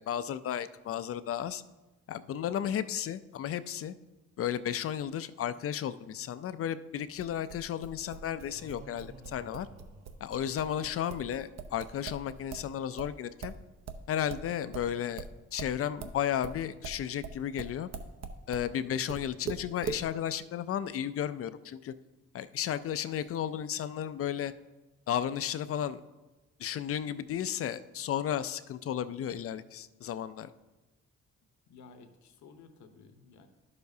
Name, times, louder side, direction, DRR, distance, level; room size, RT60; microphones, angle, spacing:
voice 1, 0.0-1.6 2.1-3.9 4.4-9.7 10.2-13.5 14.1-15.3 15.5-17.9 18.5-21.9 22.3-24.5 25.1-26.0 26.6-30.5, left 10 dB, 50° left, 14 dB, 0.4 m, -33 dB
sound 1, 7.2-12.7 13.0-18.7 19.1-20.1, right 6 dB, 60° right, 0.8 m, -41 dB
sound 2, 8.4-11.0, right 2 dB, 90° right, 1.7 m, -54 dB
voice 2, 31.7-33.5, left 4 dB, 70° left, 7 dB, 1.0 m, -54 dB
11.0 x 6.8 x 2.7 m, 1.1 s
cardioid pair, 90°, 30 cm